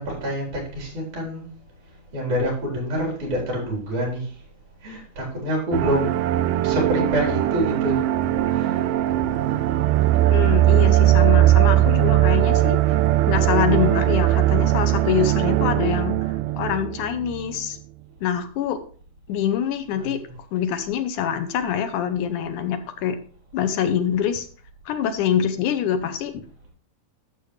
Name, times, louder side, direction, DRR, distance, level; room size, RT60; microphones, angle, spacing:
voice 1, 0.0-1.5 2.1-4.3 4.8-6.1 6.6-8.1 8.5-8.8 19.9-20.3, equal, 65° right, -3 dB, 5.7 m, -27 dB
sound 1, 5.7-17.6, right 13 dB, 85° right, 2.2 m, -19 dB
voice 2, 10.3-13.0 13.3-16.2 16.6-17.8 18.2-18.8 19.3-20.2 20.5-23.2 23.5-24.5 24.9-26.3, left 9 dB, 75° left, 9 dB, 2.3 m, -25 dB
12.0 x 7.4 x 3.2 m, 0.44 s
omnidirectional pair, 3.7 m